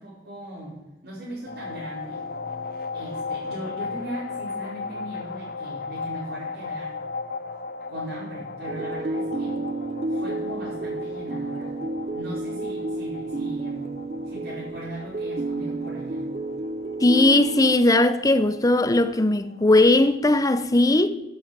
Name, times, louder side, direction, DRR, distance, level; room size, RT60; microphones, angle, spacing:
voice 1, 0.0-2.2 2.9-6.9 7.9-9.6 10.1-11.8 12.1-13.9 14.2-16.3, right 1 dB, 65° right, 5.0 m, -38 dB
sound 1, 1.5-20.1, left 4 dB, 55° left, 0.7 m, -37 dB
sound 2, 8.7-17.8, right 2 dB, 35° right, 0.4 m, -30 dB
voice 2, 17.0-21.1, left 2 dB, 20° left, 0.6 m, -18 dB
11.0 x 7.6 x 7.2 m
head